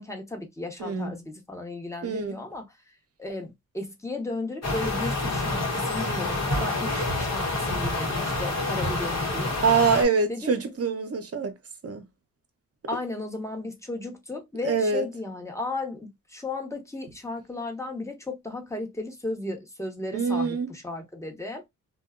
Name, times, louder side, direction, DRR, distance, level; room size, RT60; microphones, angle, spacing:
voice 1, 0.0-2.6 3.2-9.6 10.3-10.6 12.9-21.7, left 2 dB, 10° left, 1.0 m, -35 dB
voice 2, 0.8-1.1 2.0-2.4 9.6-11.5 11.8-12.1 14.6-15.1 20.1-20.7, right 5 dB, 45° right, 0.8 m, -24 dB
sound 1, 4.6-10.1, left 2 dB, 50° left, 1.1 m, -28 dB
2.6 x 2.2 x 2.3 m
cardioid pair, 75°, 34 cm